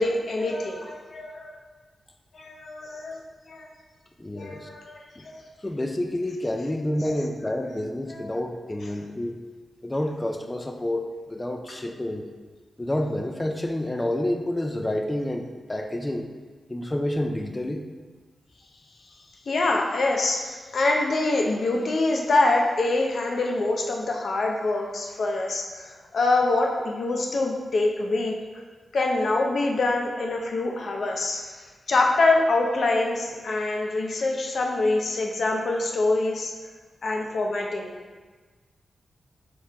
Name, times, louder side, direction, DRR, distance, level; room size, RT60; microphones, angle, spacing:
voice 1, 0.0-1.6 2.3-3.2 3.5-3.7 4.4-5.4 7.1-7.2 8.1-8.3 19.5-28.3 28.9-36.5 37.0-37.9, left 2 dB, 70° left, 1 dB, 0.6 m, -25 dB
voice 2, 4.2-4.7 5.2-5.3 5.6-9.4 9.8-12.3 12.8-16.3 16.7-17.8, left 1 dB, 20° left, 4 dB, 0.3 m, -29 dB
4.6 x 3.0 x 3.4 m, 1.4 s
cardioid pair, 75°, 0 cm